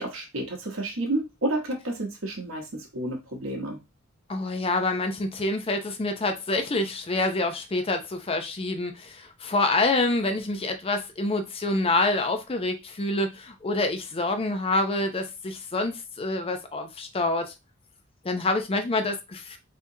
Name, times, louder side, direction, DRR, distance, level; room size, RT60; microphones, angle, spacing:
voice 1, 0.0-3.8, right 1 dB, 85° right, 0.9 m, -30 dB
voice 2, 4.3-17.5 18.2-19.6, left 2 dB, 30° left, 0.5 m, -27 dB
3.6 x 2.8 x 2.7 m
head